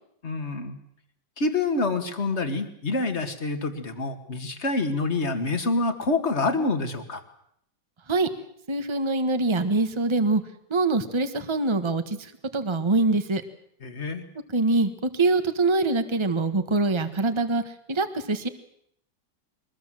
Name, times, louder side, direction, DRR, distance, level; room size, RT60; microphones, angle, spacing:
voice 1, 0.2-0.8 1.4-7.2 13.8-14.2, left 3 dB, 40° left, 8 dB, 2.4 m, -27 dB
voice 2, 8.7-10.4 10.7-12.2 12.5-13.4 14.5-17.6 17.9-18.5, right 3 dB, 20° right, 9 dB, 1.4 m, -24 dB
23.0 x 20.5 x 7.7 m, 0.69 s
omnidirectional pair, 1.8 m